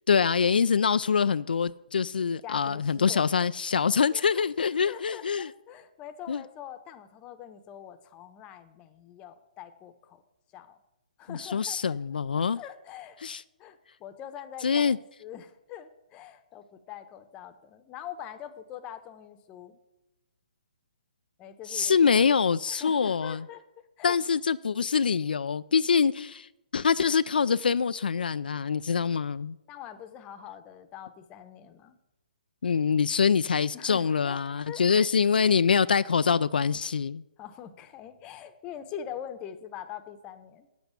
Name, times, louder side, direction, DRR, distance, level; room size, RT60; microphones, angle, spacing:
voice 1, 0.1-5.5 6.3-6.4 11.3-12.6 13.2-13.4 14.6-15.0 21.7-23.4 24.0-29.6 32.6-37.2, left 6 dB, 80° left, 0.3 m, -25 dB
voice 2, 2.4-3.2 3.9-4.4 4.8-10.2 10.5-10.8 11.2-12.0 12.3-13.2 13.6-19.8 21.4-22.4 22.7-23.6 24.0-24.2 29.7-32.0 33.7-34.4 34.7-35.1 37.4-40.7, left 9 dB, 20° left, 0.9 m, -44 dB
8.5 x 8.1 x 8.3 m
hypercardioid pair, 145°, 5 cm